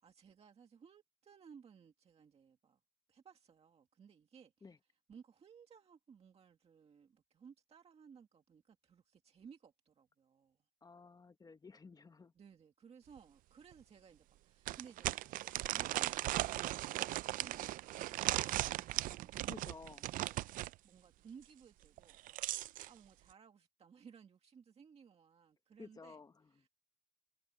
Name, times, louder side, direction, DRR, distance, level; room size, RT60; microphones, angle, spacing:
voice 1, 0.0-2.8 3.1-4.7 5.1-10.7 12.4-19.8 20.1-20.4 20.8-26.2 26.5-26.7, right 6 dB, 50° right, 1.9 m, -60 dB
voice 2, 10.8-12.3 19.5-20.1 25.8-26.5, left 4 dB, 30° left, 1.2 m, -54 dB
sound 1, 13.2-13.3 13.7-13.8 14.7-20.7 22.0-22.9, right 15 dB, 90° right, 0.4 m, -38 dB
cardioid pair, 105°, 14 cm